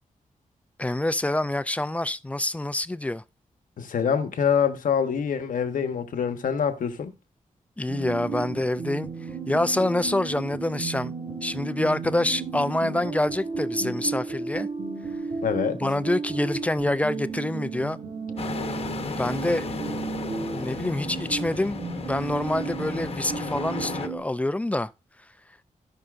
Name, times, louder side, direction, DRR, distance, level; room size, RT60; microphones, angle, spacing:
voice 1, 0.8-3.2 7.8-9.1 9.5-11.1 11.4-14.7 15.8-18.0 19.0-19.7 20.5-24.9, left 1 dB, 10° left, 0.3 m, -26 dB
voice 2, 3.8-7.1 15.4-15.8, left 7 dB, 75° left, 1.1 m, -25 dB
sound 1, 7.9-24.2, right 5 dB, 50° right, 3.1 m, -34 dB
sound 2, 18.4-24.1, left 5 dB, 45° left, 0.9 m, -35 dB
16.0 x 5.6 x 2.5 m
wide cardioid pair, 150°, 14 cm